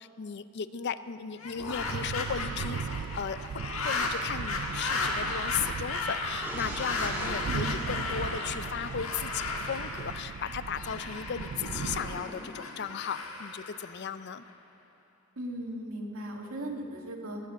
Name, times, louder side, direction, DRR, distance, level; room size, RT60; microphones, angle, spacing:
voice 1, 0.0-2.9 3.2-3.5 3.8-14.4, left 7 dB, 55° left, 14 dB, 0.5 m, -36 dB
sound 1, 1.3-14.5, left 3 dB, 75° left, 1.7 m, -35 dB
sound 2, 1.6-12.3, right 6 dB, 60° right, 0.3 m, -38 dB
sound 3, 6.4-9.1 11.5-13.0, right 1 dB, 10° right, 1.7 m, -43 dB
voice 2, 7.5-7.8 15.4-17.4, right 1 dB, 85° right, 1 dB, 1.9 m, -37 dB
18.0 x 7.5 x 8.1 m, 2.3 s
head